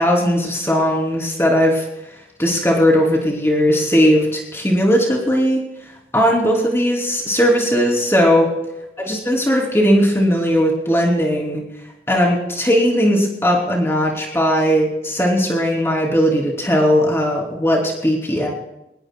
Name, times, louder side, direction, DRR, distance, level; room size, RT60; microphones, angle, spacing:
voice 1, 0.0-1.8 2.4-5.6 6.1-8.5 9.1-11.6 12.1-18.5, equal, 15° left, -2 dB, 3.4 m, -17 dB
25.0 x 20.0 x 2.4 m, 0.93 s
head